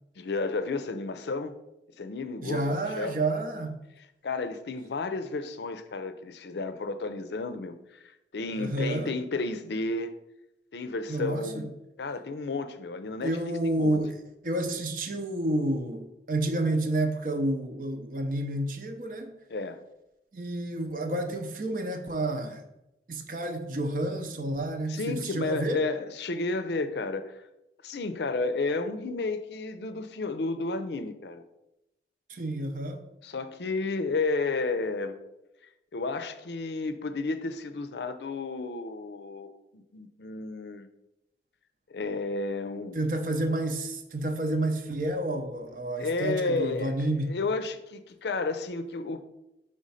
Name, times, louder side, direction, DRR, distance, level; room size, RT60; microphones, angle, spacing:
voice 1, 0.2-1.6 2.0-3.1 4.2-7.7 8.0-10.1 10.7-11.7 12.0-13.3 13.6-14.0 19.5-19.8 24.9-27.4 27.8-31.4 33.2-35.2 35.9-40.9 41.9-43.0 46.0-49.2, left 3 dB, 75° left, 0.5 m, -32 dB
voice 2, 2.4-3.8 8.6-9.1 11.1-11.7 13.2-14.1 14.4-19.3 20.3-22.6 23.1-25.8 32.3-33.0 42.9-47.4, right 1 dB, 50° right, 0.6 m, -30 dB
5.1 x 3.4 x 5.5 m
head